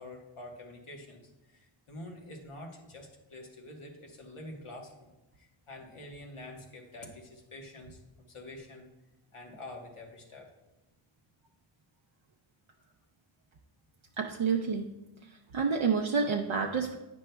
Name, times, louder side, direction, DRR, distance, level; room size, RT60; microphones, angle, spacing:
voice 1, 0.0-8.9 9.3-10.5, left 1 dB, 85° left, 1 dB, 1.2 m, -47 dB
voice 2, 14.2-14.9 15.5-17.0, right 5 dB, 70° right, 2 dB, 0.6 m, -28 dB
9.0 x 6.1 x 2.2 m, 0.98 s
wide cardioid pair, 60°, 49 cm